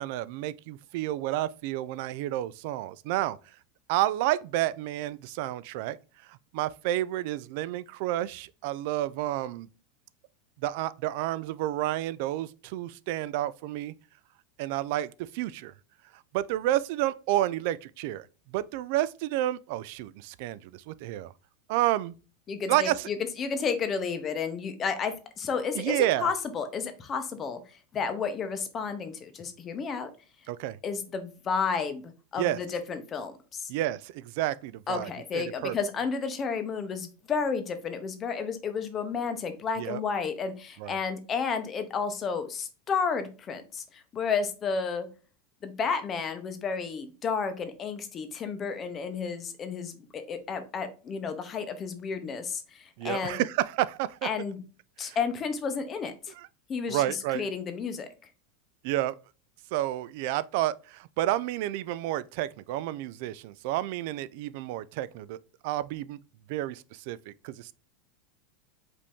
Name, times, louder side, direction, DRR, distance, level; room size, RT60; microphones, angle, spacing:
voice 1, 0.0-3.4 3.9-6.0 6.3-9.7 10.6-13.9 14.6-15.7 16.3-18.3 18.5-21.3 21.7-22.1 22.7-23.1 25.8-26.3 30.5-30.8 32.4-32.6 33.7-35.7 39.8-40.0 40.8-41.0 53.0-54.3 55.0-55.2 56.4-56.5 56.9-57.4 58.8-59.1 59.7-65.4 65.6-66.2 66.5-67.7, right 14 dB, 55° right, 0.3 m, -30 dB
voice 2, 22.5-27.6 27.9-30.1 30.8-32.0 32.3-33.7 34.9-45.1 45.6-53.4 54.2-54.6 55.0-56.3 56.7-58.1, left 5 dB, 25° left, 0.7 m, -32 dB
5.2 x 2.7 x 3.5 m
supercardioid pair, 155°, 0 cm